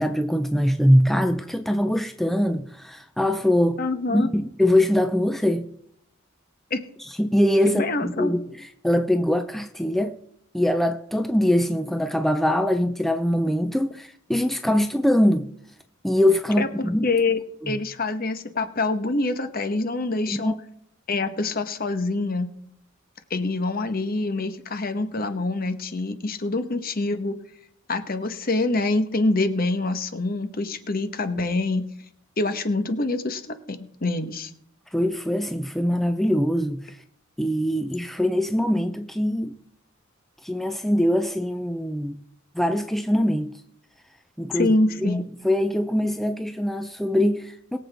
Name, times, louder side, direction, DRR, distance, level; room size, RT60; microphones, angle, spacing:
voice 1, 0.0-3.8 4.1-5.7 7.2-10.2 10.5-15.5 16.0-17.0 17.6-17.8 20.3-20.6 34.9-37.0 37.4-39.6 40.4-42.2 42.6-43.5 44.4-44.7 45.0-45.2 45.4-47.8, left 1 dB, ahead, 0.5 m, -22 dB
voice 2, 3.8-4.3 6.7-6.8 7.7-8.3 16.6-17.4 17.7-20.6 21.1-22.5 23.3-27.4 27.9-31.9 32.4-34.5 44.5-45.2, left 2 dB, 45° left, 1.1 m, -25 dB
21.5 x 7.8 x 3.5 m
head